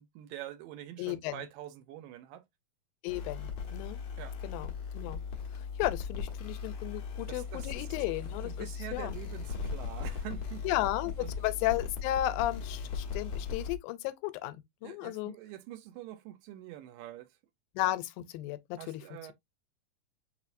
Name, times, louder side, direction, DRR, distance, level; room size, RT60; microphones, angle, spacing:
voice 1, 0.0-2.4 4.2-4.4 7.3-7.9 8.4-10.7 11.2-11.3 14.8-17.3 18.8-19.3, right 12 dB, 80° right, 2.2 m, -45 dB
voice 2, 1.0-1.4 3.0-4.0 4.4-5.2 5.8-8.7 8.9-9.1 10.6-15.3 17.8-19.0, left 15 dB, 90° left, 2.3 m, -34 dB
sound 1, 3.1-13.8, left 6 dB, 65° left, 1.3 m, -38 dB
sound 2, 7.1-13.1, left 1 dB, 35° left, 1.7 m, -62 dB
6.2 x 3.1 x 2.5 m
omnidirectional pair, 4.1 m